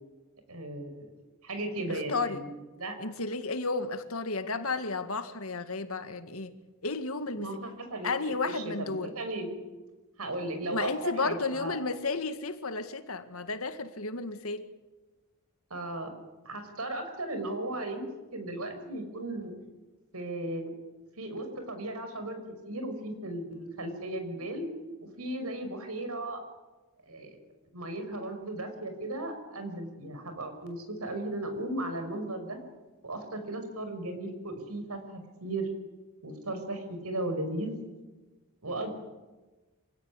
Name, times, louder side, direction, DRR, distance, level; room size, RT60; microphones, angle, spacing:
voice 1, 0.5-1.1 1.4-2.5 2.8-3.0 7.4-9.6 10.2-11.7 15.7-16.1 16.4-18.0 18.3-19.5 20.1-20.7 21.2-22.4 22.7-24.7 25.2-26.4 27.1-27.4 27.7-32.6 33.0-35.7 36.2-37.7 38.6-38.9, right 1 dB, 80° right, 5.7 m, -36 dB
voice 2, 1.9-2.4 3.0-6.5 6.8-7.5 8.0-9.1 10.7-14.6, left 3 dB, 70° left, 2.0 m, -32 dB
27.0 x 17.0 x 9.8 m
head